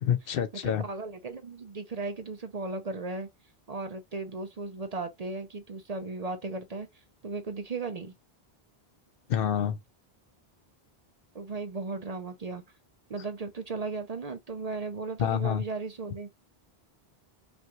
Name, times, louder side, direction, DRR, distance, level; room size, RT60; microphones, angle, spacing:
voice 1, 0.0-0.8 9.3-9.8 15.2-15.6, left 9 dB, 70° left, 0.7 m, -27 dB
voice 2, 0.6-3.3 3.7-8.1 11.3-12.6 13.1-16.3, right 3 dB, 45° right, 0.6 m, -36 dB
5.3 x 2.3 x 3.0 m
omnidirectional pair, 1.1 m